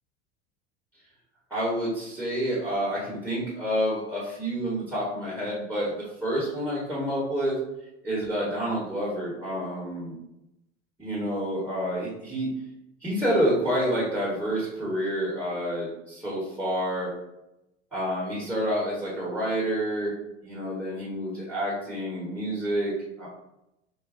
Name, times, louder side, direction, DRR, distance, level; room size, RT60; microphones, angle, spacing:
voice 1, 1.5-7.5 8.0-10.2 11.0-12.5 13.0-17.1 17.9-20.1 20.4-22.9 23.2-23.3, equal, 5° right, -8 dB, 1.2 m, -28 dB
3.8 x 2.5 x 2.5 m, 0.89 s
hypercardioid pair, 90°, 34 cm